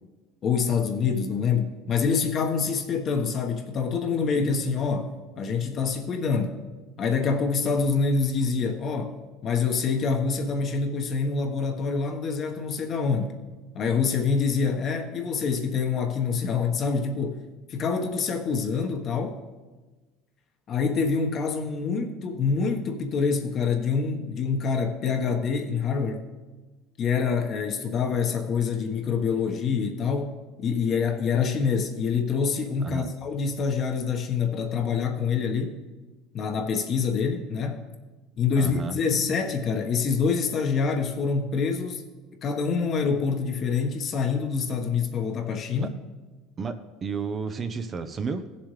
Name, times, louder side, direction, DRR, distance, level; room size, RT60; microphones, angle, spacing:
voice 1, 0.4-6.5 7.0-9.2 9.4-13.4 13.7-17.4 17.7-19.4 20.7-26.2 27.0-35.8 36.3-37.8 38.4-42.0 42.4-45.9, left 5 dB, 45° left, 4 dB, 1.3 m, -26 dB
voice 2, 32.8-33.1 38.6-39.0 45.8-45.9 46.6-48.5, right 5 dB, 35° right, 9 dB, 0.7 m, -32 dB
16.0 x 7.1 x 3.3 m, 1.2 s
supercardioid pair, 105°, 0 cm